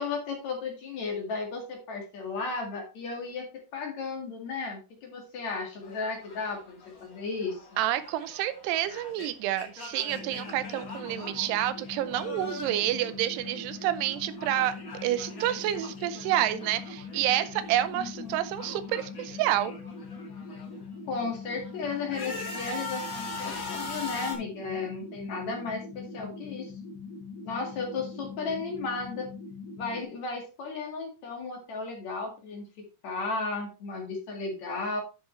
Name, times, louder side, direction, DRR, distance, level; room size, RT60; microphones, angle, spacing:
voice 1, 0.0-7.7 17.9-18.4 21.1-26.7 27.4-29.3 29.8-35.0, left 4 dB, 50° left, 2 dB, 2.8 m, -34 dB
sound 1, 5.8-13.8 14.1-17.9 18.1-20.8 21.3-24.4, left 3 dB, 30° left, 1.7 m, -42 dB
voice 2, 7.8-14.8 15.0-19.7, right 13 dB, 85° right, 14 dB, 2.8 m, -29 dB
sound 2, 10.1-30.0, left 4 dB, 85° left, 3.6 m, -42 dB
10.5 x 6.5 x 3.2 m, 0.30 s
omnidirectional pair, 4.7 m